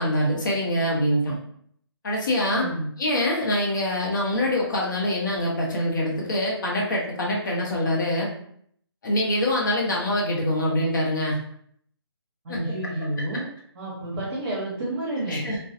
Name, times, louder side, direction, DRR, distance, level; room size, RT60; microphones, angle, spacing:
voice 1, 0.0-1.4 2.0-2.7 3.0-8.3 9.0-11.4 12.5-12.7 15.3-15.6, left 1 dB, 45° left, -3 dB, 0.8 m, -24 dB
voice 2, 2.5-2.9 12.4-13.5 13.7-15.5, right 1 dB, 35° right, -7 dB, 1.0 m, -30 dB
2.4 x 2.2 x 2.6 m, 0.65 s
hypercardioid pair, 160°, 14 cm